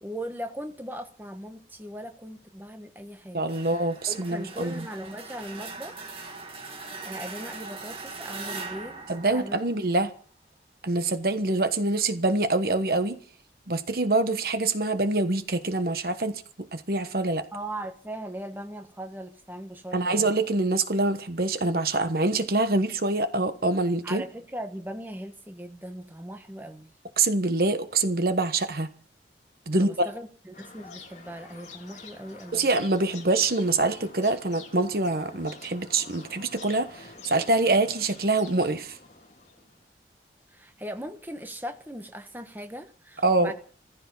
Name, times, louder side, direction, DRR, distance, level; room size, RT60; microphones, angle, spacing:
voice 1, 0.0-3.5 4.1-6.2 7.0-9.6 17.5-20.4 24.0-26.9 29.7-32.7 40.5-43.5, right 1 dB, 10° right, 1.3 m, -39 dB
voice 2, 3.3-4.8 9.1-10.1 10.8-13.2 13.7-17.4 19.9-24.2 27.2-28.9 29.7-30.1 32.5-39.0 43.2-43.5, right 2 dB, 55° right, 1.2 m, -25 dB
sound 1, 3.5-10.2, right 3 dB, 30° right, 2.2 m, -41 dB
sound 2, 30.5-39.9, left 3 dB, 40° left, 3.2 m, -48 dB
15.0 x 15.0 x 5.6 m
head